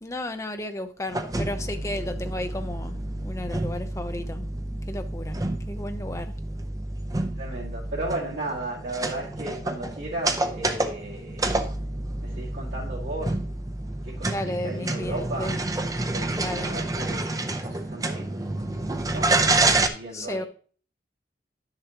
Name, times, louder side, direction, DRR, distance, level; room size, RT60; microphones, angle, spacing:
voice 1, 0.0-4.5 4.9-6.3 14.3-15.6 16.4-16.7 20.1-20.4, left 1 dB, 15° left, 0.6 m, -33 dB
sound 1, 1.1-19.9, right 2 dB, 20° right, 0.6 m, -28 dB
voice 2, 7.4-11.6 12.2-13.4 14.0-15.6 16.1-20.5, right 2 dB, 80° right, 2.2 m, -35 dB
11.0 x 6.7 x 2.9 m
head